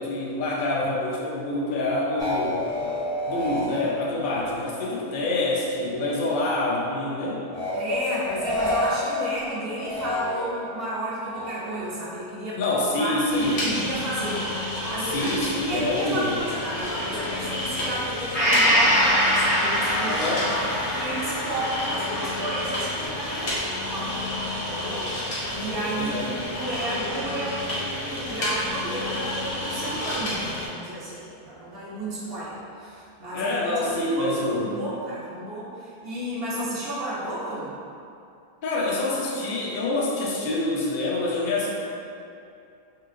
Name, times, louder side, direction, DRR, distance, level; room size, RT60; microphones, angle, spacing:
voice 1, 0.0-2.7 3.3-7.5 12.6-13.6 15.0-16.4 20.1-20.5 25.9-26.3 33.3-34.8 38.6-41.7, left 2 dB, 60° left, -4 dB, 0.7 m, -26 dB
sound 1, 2.2-5.4 5.7-6.5 7.5-10.8 11.3-12.0, left 2 dB, 30° right, 0.6 m, -30 dB
voice 2, 3.3-3.9 7.7-14.5 14.7-15.3 15.7-20.6 20.9-24.2 24.5-37.8, right 1 dB, 70° right, -7 dB, 0.8 m, -32 dB
sound 2, 13.3-30.7, left 1 dB, 90° left, 1.0 m, -31 dB
Gong, 18.3-26.0 26.4-26.5, equal, 15° left, 0.5 m, -25 dB
3.0 x 2.8 x 2.5 m, 2.6 s
omnidirectional pair, 1.1 m